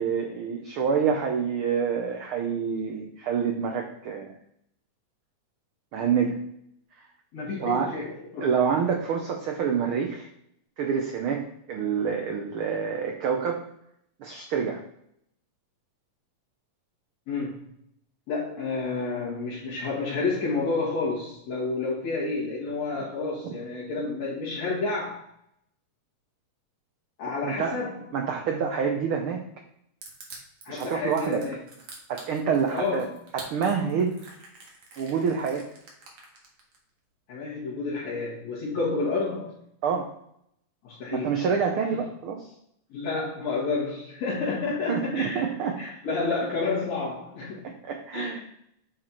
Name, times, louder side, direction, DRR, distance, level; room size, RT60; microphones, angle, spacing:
voice 1, 0.0-4.3 5.9-6.4 7.6-7.9 8.4-10.3 10.8-11.4 11.7-13.6 14.2-14.8 22.9-23.0 23.4-23.5 27.4-27.8 28.1-29.4 30.7-31.4 32.1-33.1 33.3-34.2 35.0-35.7 39.8-40.1 41.1-42.5 44.9-45.8 47.6-48.4, right 6 dB, 85° right, 3 dB, 1.1 m, -27 dB
voice 2, 7.3-8.5 17.3-17.6 18.3-25.2 27.2-28.0 28.9-29.0 30.6-31.6 32.7-33.1 37.3-39.5 40.8-41.4 42.9-45.5 45.8-47.7 48.1-48.4, left 3 dB, 65° left, -8 dB, 3.1 m, -30 dB
Crushing, 30.0-36.8, right 3 dB, 50° right, 2.2 m, -46 dB
7.7 x 4.4 x 4.3 m, 0.73 s
omnidirectional pair, 3.4 m